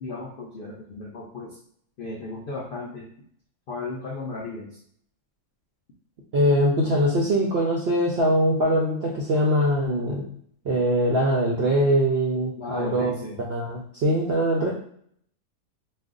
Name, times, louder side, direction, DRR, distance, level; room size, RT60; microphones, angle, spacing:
voice 1, 0.0-1.6 2.0-3.1 3.7-4.8 12.6-13.4, left 3 dB, 80° left, -2 dB, 0.5 m, -35 dB
voice 2, 6.3-10.2 10.6-14.7, equal, 70° right, -2 dB, 0.6 m, -22 dB
2.4 x 2.3 x 3.6 m, 0.64 s
omnidirectional pair, 1.6 m